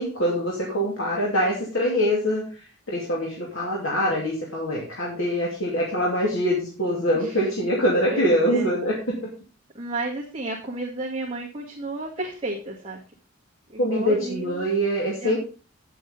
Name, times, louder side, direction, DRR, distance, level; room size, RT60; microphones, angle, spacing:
voice 1, 0.0-9.0 13.8-15.4, equal, 65° left, -3 dB, 2.7 m, -24 dB
voice 2, 7.1-7.5 8.1-8.7 9.7-13.0 13.7-14.7 15.2-15.4, right 2 dB, 25° right, -4 dB, 1.8 m, -32 dB
9.3 x 7.8 x 5.2 m, 0.37 s
head